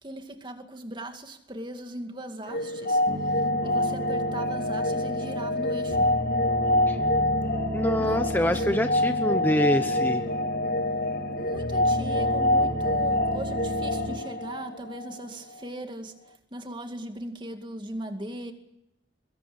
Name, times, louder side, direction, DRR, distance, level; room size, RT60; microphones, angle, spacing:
voice 1, 0.0-3.0 3.6-6.1 8.0-8.8 11.4-16.1 16.5-18.5, right 1 dB, 25° right, 2.3 m, -39 dB
sound 1, 2.5-15.2, left 1 dB, 55° left, 1.0 m, -26 dB
sound 2, 3.1-14.2, right 1 dB, 45° right, 3.9 m, -34 dB
voice 2, 7.7-10.2, equal, 10° left, 0.9 m, -25 dB
23.0 x 21.5 x 8.8 m
head